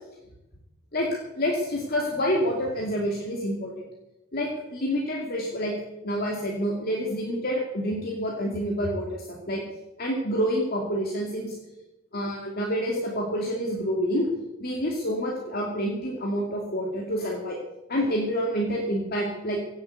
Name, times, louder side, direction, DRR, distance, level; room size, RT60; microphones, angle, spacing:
voice 1, 1.3-3.8 4.3-5.7 6.0-9.6 10.0-11.6 12.1-14.3 14.6-17.6 17.9-19.6, equal, 45° left, -2 dB, 2.5 m, -28 dB
17.0 x 8.1 x 8.3 m, 0.95 s
head